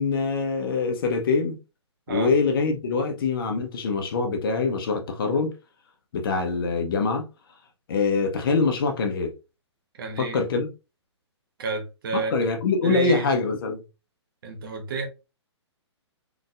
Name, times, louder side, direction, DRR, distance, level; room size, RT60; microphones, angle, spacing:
voice 1, 0.0-1.6 2.1-5.6 6.1-7.2 7.9-9.3 10.2-10.7 12.1-13.8, left 4 dB, 50° left, 1.0 m, -24 dB
voice 2, 10.0-10.4 11.6-12.5 12.8-13.3 14.4-15.1, right 4 dB, 50° right, 1.2 m, -30 dB
3.9 x 3.4 x 2.5 m
figure-of-eight pair, 120°, 15 cm